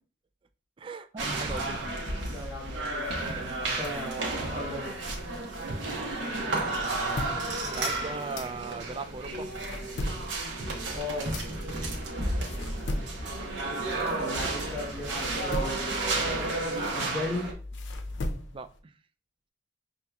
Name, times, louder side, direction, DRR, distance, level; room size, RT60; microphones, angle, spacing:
voice 1, 0.8-2.0 5.7-6.1 7.6-9.5 12.5-12.8 18.5-18.7, right 4 dB, 30° right, 10 dB, 0.3 m, -39 dB
sound 1, 1.2-17.5, right 2 dB, 85° right, 0.9 m, -32 dB
voice 2, 2.3-5.0 10.9-11.4 14.2-17.5, left 1 dB, 5° right, -8 dB, 1.3 m, -37 dB
sound 2, 6.5-9.0 9.4-14.7 15.0-18.8, left 1 dB, 85° left, 0.6 m, -39 dB
sound 3, 11.4-18.2, left 2 dB, 35° left, 1.7 m, -45 dB
5.4 x 2.8 x 2.3 m, 0.37 s
head